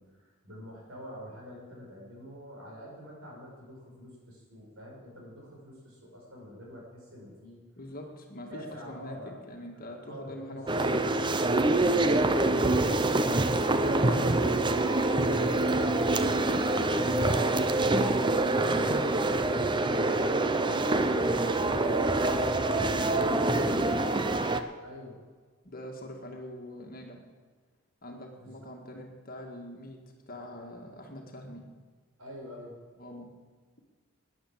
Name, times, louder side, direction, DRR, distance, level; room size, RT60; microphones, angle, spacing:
voice 1, 0.0-7.6 8.5-9.4 9.8-10.8 12.5-13.2 13.7-14.9 20.6-21.0 24.8-25.2 28.4-28.6 32.2-32.8, equal, 65° right, -2 dB, 5.2 m, -46 dB
voice 2, 7.8-11.8 12.5-13.1 13.7-14.6 16.3-20.0 20.3-22.0 22.2-24.2 25.6-27.2 28.0-31.7 33.0-33.3, left 1 dB, 40° left, 2 dB, 1.9 m, -44 dB
sound 1, 10.7-24.6, right 2 dB, 20° right, 0.6 m, -25 dB
13.0 x 9.7 x 7.2 m, 1.5 s
head